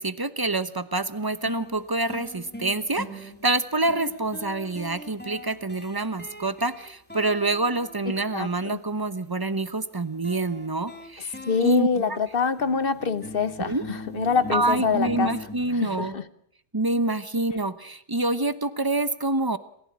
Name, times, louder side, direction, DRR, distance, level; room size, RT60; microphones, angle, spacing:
voice 1, 0.0-11.3 11.6-12.2 13.6-13.8 14.5-16.2 16.7-19.6, right 2 dB, 20° right, 13 dB, 0.7 m, -27 dB
sound 1, 1.0-1.1 1.5-8.7 10.2-16.1, left 1 dB, 5° left, 2.5 m, -41 dB
voice 2, 8.3-8.8 11.5-15.3 15.8-16.2, left 5 dB, 40° left, 14 dB, 1.1 m, -25 dB
27.5 x 15.5 x 8.8 m, 0.70 s
omnidirectional pair, 1.8 m